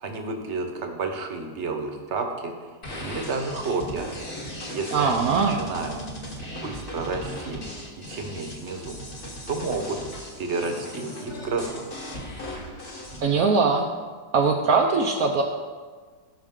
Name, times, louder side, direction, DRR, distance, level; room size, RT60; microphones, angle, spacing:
voice 1, 0.0-2.5 3.0-4.1 4.7-6.0 6.5-7.6 8.1-9.0 9.5-10.0 10.4-11.8, right 3 dB, 45° right, 4 dB, 1.1 m, -30 dB
sound 1, 2.8-13.2, equal, 30° left, 1.2 m, -37 dB
voice 2, 4.9-5.6 13.2-13.8 14.3-15.4, right 4 dB, 65° right, 1 dB, 0.9 m, -21 dB
16.0 x 5.9 x 3.7 m, 1.5 s
omnidirectional pair, 2.1 m